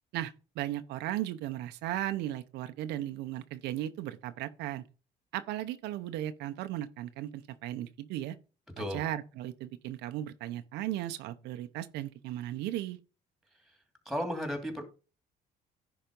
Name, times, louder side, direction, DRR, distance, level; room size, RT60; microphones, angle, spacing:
voice 1, 0.1-4.8 5.3-8.4 8.8-13.0, right 13 dB, 85° right, 0.8 m, -36 dB
voice 2, 14.1-14.8, equal, ahead, 2.6 m, -34 dB
10.5 x 4.2 x 5.2 m
cardioid pair, 110°, 17 cm